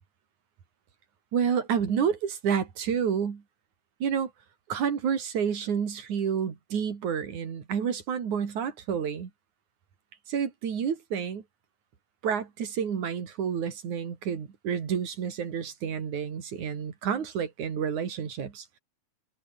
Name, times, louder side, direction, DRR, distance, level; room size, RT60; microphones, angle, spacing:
voice 1, 1.3-3.4 4.0-4.3 4.7-9.3 10.3-11.4 12.2-18.8, right 7 dB, 80° right, 4.3 m, -29 dB
omnidirectional pair, 3.4 m